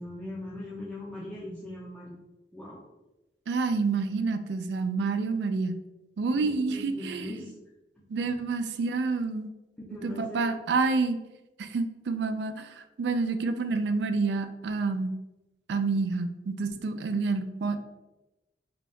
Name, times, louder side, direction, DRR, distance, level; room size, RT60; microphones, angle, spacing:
voice 1, 0.0-2.2 2.5-2.8 6.3-7.5 8.0-8.4 9.8-10.4, left 1 dB, 5° left, -7 dB, 0.4 m, -41 dB
voice 2, 3.5-5.8 6.2-7.3 8.1-9.5 10.0-11.2 11.6-15.1 15.7-17.8, right 4 dB, 75° right, 9 dB, 0.4 m, -28 dB
3.8 x 2.3 x 3.4 m, 1.0 s
head